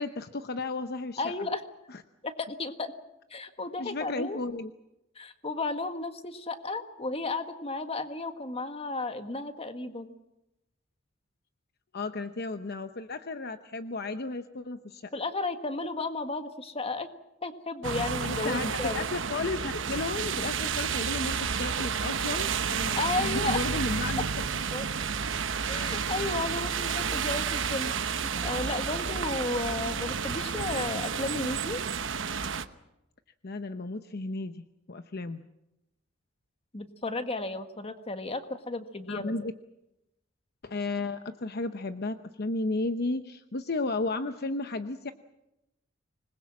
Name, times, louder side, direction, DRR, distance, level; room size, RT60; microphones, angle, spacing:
voice 1, 0.0-1.2 1.9-2.0 3.8-4.7 11.9-15.0 18.2-24.2 33.4-35.4 39.1-39.5 40.6-45.1, left 3 dB, 55° left, 9 dB, 0.8 m, -33 dB
voice 2, 1.2-1.6 2.2-2.9 3.3-4.4 5.2-10.2 15.1-17.1 17.4-19.1 22.9-23.6 24.2-24.3 24.7-24.9 25.7-31.8 36.7-39.3, left 3 dB, 30° left, 8 dB, 1.7 m, -33 dB
sound 1, 17.8-32.7, right 6 dB, 70° right, 1.1 m, -31 dB
26.0 x 21.0 x 7.5 m, 0.90 s
head